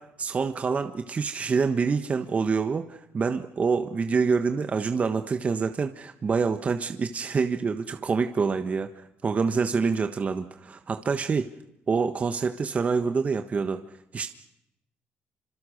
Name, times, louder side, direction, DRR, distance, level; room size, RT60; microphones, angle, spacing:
voice 1, 0.0-8.9 9.2-11.5 11.9-13.8 14.1-14.3, right 5 dB, 35° right, 7 dB, 1.3 m, -26 dB
27.5 x 26.0 x 6.6 m, 0.79 s
cardioid pair, 100°, 4 cm